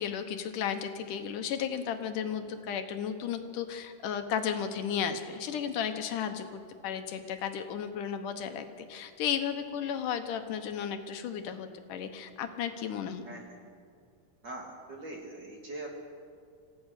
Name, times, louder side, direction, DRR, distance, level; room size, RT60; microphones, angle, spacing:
voice 1, 0.0-13.2, left 8 dB, 75° left, 7 dB, 2.5 m, -34 dB
voice 2, 14.4-16.0, right 2 dB, 35° right, 0 dB, 2.9 m, -42 dB
27.0 x 15.0 x 6.5 m, 2.3 s
omnidirectional pair, 3.8 m